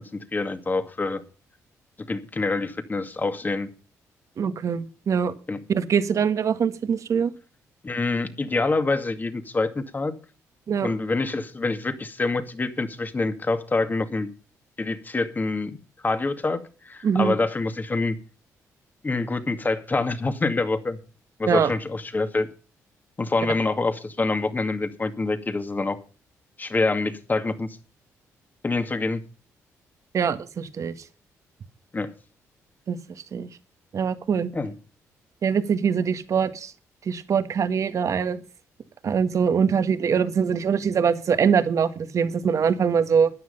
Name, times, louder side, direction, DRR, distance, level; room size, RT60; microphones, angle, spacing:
voice 1, 0.1-1.2 2.0-3.7 5.5-5.6 7.8-10.1 10.8-14.3 14.8-15.8 16.0-18.2 19.0-21.0 21.4-22.5 23.2-26.0 26.6-27.7 28.6-29.2 31.9-32.1 34.5-34.7, left 3 dB, 30° left, 9 dB, 2.2 m, -26 dB
voice 2, 4.4-5.3 5.7-7.3 10.7-10.9 17.0-17.4 21.5-21.7 30.1-30.9 32.9-33.0 33.3-33.5 33.9-34.5 35.4-36.7 37.0-38.4 39.0-43.3, right 6 dB, 55° right, 11 dB, 1.7 m, -23 dB
13.5 x 9.7 x 5.5 m, 0.36 s
cardioid pair, 70°, 6 cm